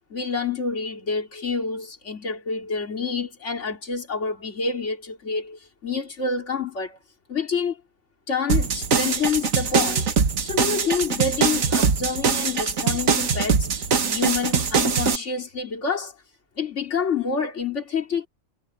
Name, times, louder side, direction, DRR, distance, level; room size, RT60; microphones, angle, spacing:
voice 1, 0.1-7.0 7.3-7.8 8.3-10.1 10.4-16.1 16.6-18.3, left 5 dB, 60° left, 3.1 m, -28 dB
sound 1, 8.5-15.2, right 5 dB, 85° right, 1.9 m, -22 dB
omnidirectional pair, 1.4 m